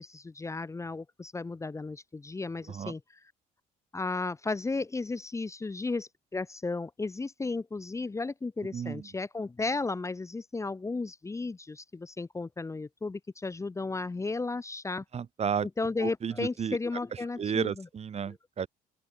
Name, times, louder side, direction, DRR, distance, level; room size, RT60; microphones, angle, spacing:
voice 1, 0.0-3.0 3.9-15.0 15.8-17.7 18.3-18.4, left 3 dB, 15° left, 1.3 m, -34 dB
voice 2, 8.7-9.1 15.1-15.7 16.0-16.8 17.1-18.7, right 7 dB, 40° right, 2.0 m, -33 dB
open air
cardioid pair, 110°, 17 cm